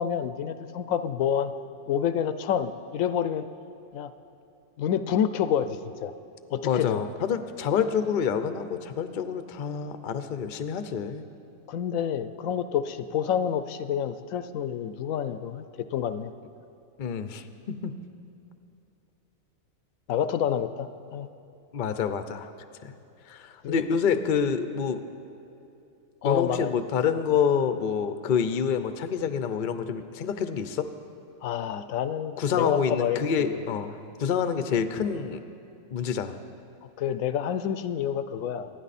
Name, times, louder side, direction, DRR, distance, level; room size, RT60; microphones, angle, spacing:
voice 1, 0.0-1.5 1.9-3.5 3.9-4.1 4.8-6.1 6.5-7.0 11.7-16.3 20.1-21.3 23.6-23.8 26.2-26.7 31.4-33.6 37.0-38.7, left 9 dB, 80° left, 12 dB, 1.0 m, -28 dB
voice 2, 6.6-11.2 17.0-18.0 21.7-22.5 22.8-22.9 23.3-25.0 26.2-30.9 32.4-35.4 35.9-36.4, left 7 dB, 50° left, 10 dB, 0.7 m, -27 dB
25.0 x 9.9 x 4.2 m, 2.8 s
omnidirectional pair, 1.4 m